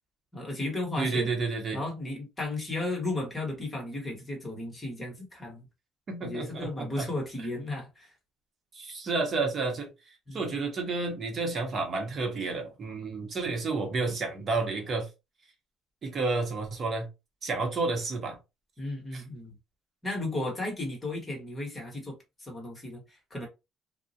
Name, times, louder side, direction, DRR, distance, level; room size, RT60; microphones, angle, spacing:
voice 1, 0.3-1.3 1.7-5.7 6.2-8.1 10.3-10.4 18.8-19.5 20.0-23.5, left 2 dB, 20° left, 1.1 m, -34 dB
voice 2, 1.0-1.8 6.1-7.1 8.7-9.9 10.3-15.1 16.0-17.1 17.4-18.4 19.1-19.2, right 3 dB, 40° right, 0.8 m, -30 dB
2.2 x 2.0 x 2.7 m
cardioid pair, 115°, 0 cm